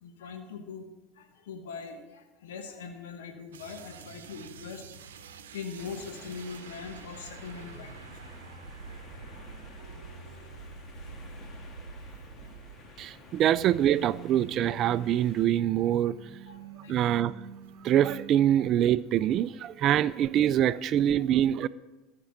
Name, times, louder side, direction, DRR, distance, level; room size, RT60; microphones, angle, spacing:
voice 1, 0.0-0.9 1.1-4.8 5.5-8.1 10.0-10.1 10.4-10.5 11.2-11.3 12.0-12.1 16.5-17.0, left 5 dB, 75° left, 1.1 m, -42 dB
sound 1, 3.5-13.1 13.3-18.4, right 6 dB, 80° right, 0.8 m, -46 dB
sound 2, 5.8-15.5, left 3 dB, 40° left, 1.9 m, -51 dB
voice 2, 13.0-16.2 16.9-17.3 17.8-21.7, right 11 dB, 50° right, 0.3 m, -24 dB
13.5 x 6.0 x 7.0 m
hypercardioid pair, 80°, 0 cm